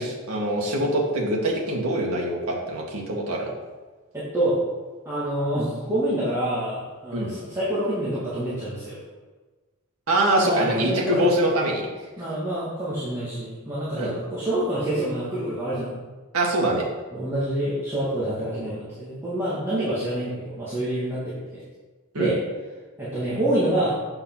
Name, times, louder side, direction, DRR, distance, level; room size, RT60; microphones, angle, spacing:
voice 1, 0.0-3.5 7.1-7.3 10.1-11.9 14.0-14.1 16.3-16.9 22.1-22.3, right 1 dB, 80° right, -2 dB, 2.0 m, -24 dB
voice 2, 4.1-4.6 5.0-9.0 10.4-11.3 12.2-15.9 17.1-21.6 22.2-22.4 23.0-23.9, right 1 dB, 10° right, -11 dB, 2.3 m, -27 dB
8.4 x 5.8 x 5.7 m, 1.3 s
head